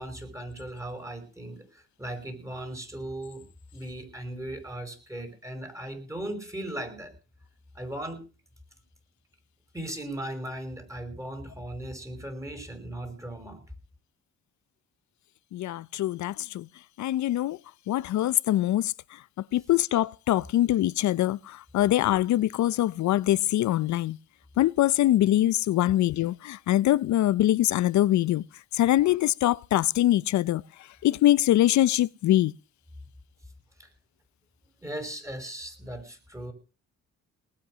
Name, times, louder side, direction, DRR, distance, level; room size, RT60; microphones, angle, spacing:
voice 1, 0.0-3.4 3.7-7.1 7.8-8.2 9.7-13.6 25.9-26.0 33.8-33.9 34.8-36.5, right 1 dB, 10° right, 5.1 m, -37 dB
voice 2, 15.5-16.7 17.0-17.6 17.9-18.9 19.5-24.2 24.6-28.4 28.7-30.6 31.0-32.5, left 14 dB, 70° left, 0.6 m, -23 dB
19.0 x 8.5 x 6.2 m
cardioid pair, 90°, 30 cm